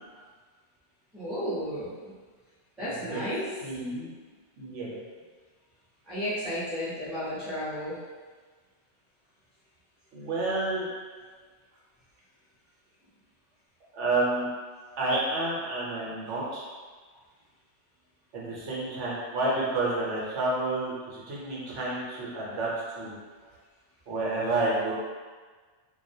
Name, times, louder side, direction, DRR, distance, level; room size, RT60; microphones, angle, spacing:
voice 1, 1.1-2.1 2.8-3.5 6.1-8.0, equal, ahead, -12 dB, 0.5 m, -33 dB
voice 2, 2.8-3.2 3.6-4.1 4.6-5.0 10.1-10.9 13.9-14.5 15.0-16.7 18.3-23.2 24.1-24.9, right 2 dB, 75° right, -6 dB, 1.0 m, -30 dB
2.3 x 2.1 x 2.6 m, 1.4 s
omnidirectional pair, 1.2 m